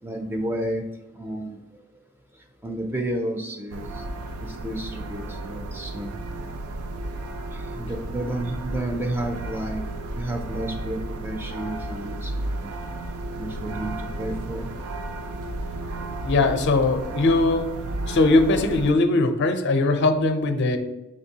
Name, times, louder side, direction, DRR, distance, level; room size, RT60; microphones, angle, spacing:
voice 1, 0.0-0.8 1.2-1.6 2.6-4.0 4.4-6.2 7.5-9.8 10.2-12.7 13.4-14.7, right 1 dB, 10° right, 3 dB, 0.4 m, -31 dB
sound 1, 3.7-18.9, right 2 dB, 85° right, 0.4 m, -33 dB
voice 2, 16.2-17.7 18.1-20.8, left 2 dB, 55° left, 8 dB, 0.5 m, -20 dB
5.1 x 3.8 x 2.7 m, 1.0 s
head